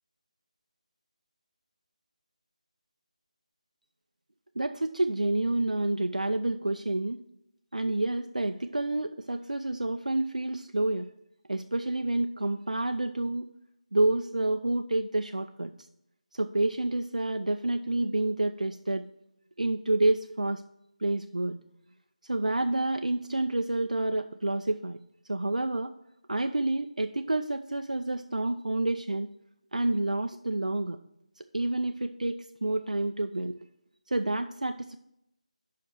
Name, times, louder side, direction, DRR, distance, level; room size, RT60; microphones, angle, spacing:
voice 1, 4.6-7.2 7.7-11.1 11.5-13.5 13.9-15.7 16.3-19.0 19.6-20.6 21.0-21.6 22.2-25.0 25.3-25.9 26.3-29.3 29.7-31.0 31.4-33.6 34.1-35.0, right 2 dB, 85° right, 6 dB, 0.4 m, -29 dB
5.6 x 5.3 x 6.5 m, 0.80 s
figure-of-eight pair, 160°, 4 cm